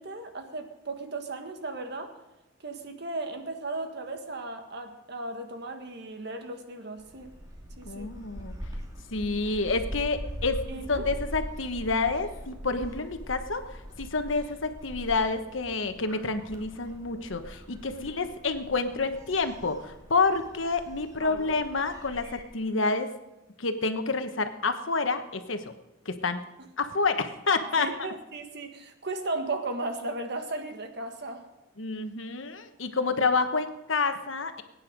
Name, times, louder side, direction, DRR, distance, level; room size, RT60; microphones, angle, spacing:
voice 1, 0.0-2.1 2.6-7.3 7.8-8.1 10.7-11.1 17.9-18.3 21.2-21.6 27.8-31.5, right 2 dB, 60° right, 5 dB, 1.7 m, -36 dB
Gull seagull, 7.0-22.4, equal, 20° right, 2.3 m, -42 dB
voice 2, 7.8-8.5 9.1-23.1 23.6-25.7 26.0-26.4 26.8-27.9 31.8-34.6, left 3 dB, 80° left, 8 dB, 1.2 m, -28 dB
22.0 x 9.7 x 5.2 m, 0.97 s
head